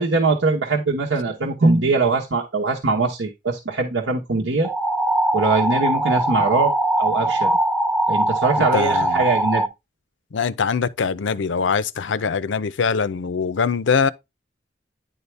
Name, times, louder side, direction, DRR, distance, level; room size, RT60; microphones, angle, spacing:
voice 1, 0.0-4.7 5.3-6.7 7.0-7.6 8.1-9.6, right 3 dB, 90° right, 1.1 m, -21 dB
sound 1, 4.6-9.7, right 1 dB, 10° right, 0.6 m, -21 dB
voice 2, 8.6-9.3 10.3-14.1, left 5 dB, 80° left, 0.5 m, -23 dB
10.5 x 4.1 x 3.3 m
head